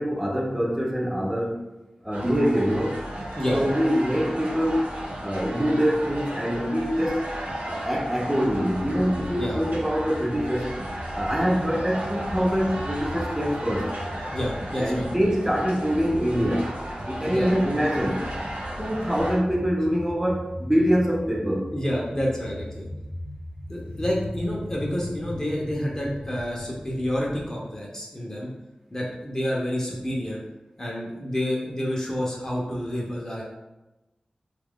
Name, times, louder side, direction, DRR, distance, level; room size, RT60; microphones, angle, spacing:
voice 1, 0.0-1.6 2.0-3.0 3.5-4.9 5.2-7.2 7.6-10.7 11.1-13.9 14.8-16.7 17.1-18.2 18.8-21.7, equal, 15° right, -2 dB, 0.6 m, -24 dB
sound 1, 2.1-19.4, right 1 dB, 85° right, 0.7 m, -34 dB
sound 2, 8.8-27.4, left 1 dB, 80° left, 0.5 m, -39 dB
voice 2, 14.3-15.1 17.2-17.5 21.7-22.9 23.7-28.5 28.9-30.4 30.8-33.4, equal, 25° left, -3 dB, 0.7 m, -28 dB
3.0 x 2.4 x 3.5 m, 1.0 s
wide cardioid pair, 65°, 3 cm